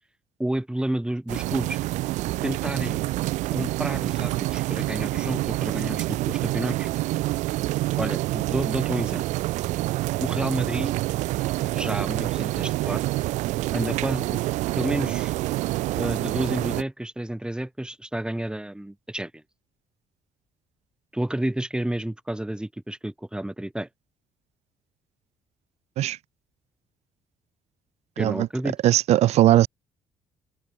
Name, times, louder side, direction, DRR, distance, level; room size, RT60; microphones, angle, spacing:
voice 1, 0.4-1.8 2.4-3.0 3.5-6.9 8.0-9.2 10.2-10.9 11.7-13.0 13.7-14.4 14.8-15.3 16.0-19.4 21.1-23.9 28.2-28.8, right 1 dB, 5° right, 3.1 m, -30 dB
sound 1, 1.3-16.8, right 18 dB, 75° right, 1.0 m, -27 dB
voice 2, 28.8-29.7, right 14 dB, 60° right, 0.4 m, -19 dB
supercardioid pair, 65°, 12 cm